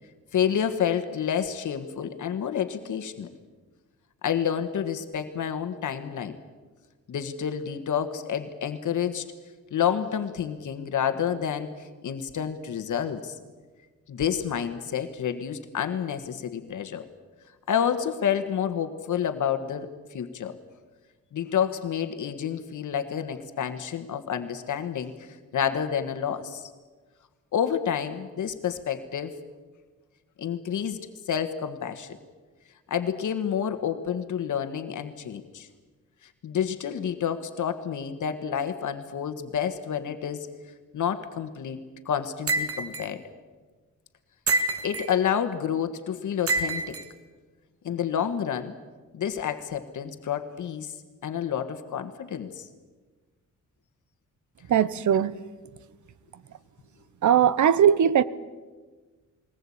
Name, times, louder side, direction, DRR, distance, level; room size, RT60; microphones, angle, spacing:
voice 1, 0.3-3.3 4.2-6.4 7.1-9.2 9.7-13.4 14.1-17.1 17.7-20.5 21.3-26.7 27.5-29.4 30.4-31.0 31.3-32.2 32.9-35.7 36.4-40.5 40.9-41.8 42.0-43.2 44.8-47.0 47.8-48.7 49.1-50.9 51.2-52.7, left 8 dB, 65° left, 1.5 m, -29 dB
sound 1, 42.5-43.1 44.5-45.1 46.5-47.0, right 2 dB, 45° right, 1.5 m, -27 dB
voice 2, 54.7-55.4 57.2-58.2, right 9 dB, 65° right, 0.9 m, -20 dB
21.5 x 19.5 x 8.6 m
wide cardioid pair, 155°, 32 cm